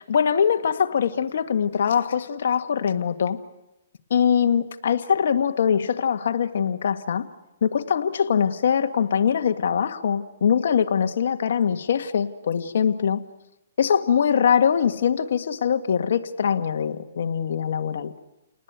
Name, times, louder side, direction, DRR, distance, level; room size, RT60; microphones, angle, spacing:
voice 1, 0.1-3.4 4.1-7.3 7.6-13.2 13.8-18.1, left 7 dB, 65° left, 8 dB, 1.8 m, -22 dB
30.0 x 19.5 x 9.5 m, 0.96 s
hypercardioid pair, 155°, 0 cm